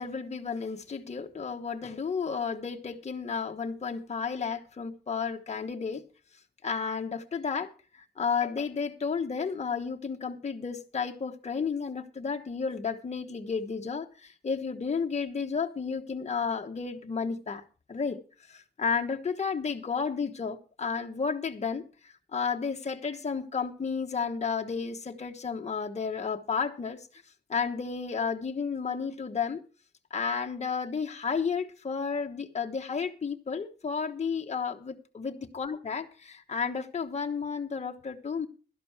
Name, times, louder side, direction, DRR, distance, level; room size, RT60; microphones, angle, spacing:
voice 1, 0.0-6.0 6.6-17.6 17.9-18.2 18.5-27.2 27.5-29.6 30.1-38.5, left 5 dB, 40° left, 1.1 m, -32 dB
12.0 x 11.0 x 4.7 m
wide cardioid pair, 95°, 17 cm